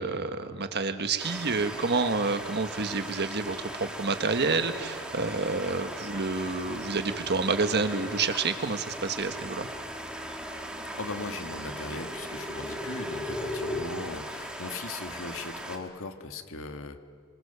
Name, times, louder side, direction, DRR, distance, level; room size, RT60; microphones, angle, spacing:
voice 1, 0.0-9.7, right 4 dB, 50° right, 8 dB, 1.4 m, -29 dB
sound 1, 1.2-15.8, right 1 dB, 5° right, 2.3 m, -39 dB
sound 2, 5.0-13.8, left 1 dB, 20° left, 2.6 m, -41 dB
voice 2, 11.0-17.0, left 3 dB, 65° left, 7 dB, 1.7 m, -38 dB
26.0 x 25.0 x 6.9 m, 2.2 s
head